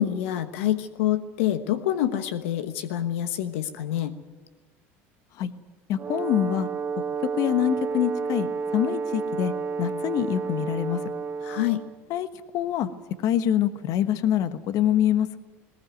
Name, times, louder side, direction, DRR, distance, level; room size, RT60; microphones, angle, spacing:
voice 1, 0.0-4.1 11.4-11.8, left 12 dB, 85° left, 9 dB, 1.2 m, -26 dB
voice 2, 5.9-6.7 7.4-8.5 8.7-9.5 9.8-11.0 12.1-12.3 12.5-12.9 13.2-15.4, left 10 dB, 60° left, 11 dB, 1.3 m, -25 dB
Brass instrument, 6.0-12.0, right 5 dB, 30° right, 1.5 m, -31 dB
20.0 x 18.5 x 9.3 m, 1.3 s
supercardioid pair, 100°, 7 cm